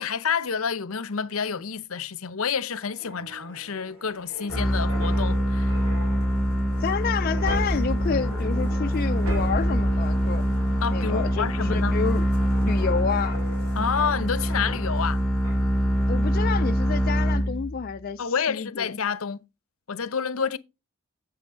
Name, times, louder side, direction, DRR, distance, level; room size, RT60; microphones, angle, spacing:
voice 1, 0.0-5.7 10.8-12.0 13.8-15.2 18.2-19.4 19.9-20.6, left 6 dB, 75° left, 0.7 m, -29 dB
sound 1, 2.7-15.1 15.4-15.7, right 1 dB, 80° right, 3.1 m, -38 dB
sound 2, 4.5-17.9, equal, ahead, 0.9 m, -24 dB
voice 2, 6.8-10.4 10.9-12.3 12.6-13.4 16.1-19.0, left 6 dB, 45° left, 0.4 m, -29 dB
7.8 x 7.7 x 3.8 m
head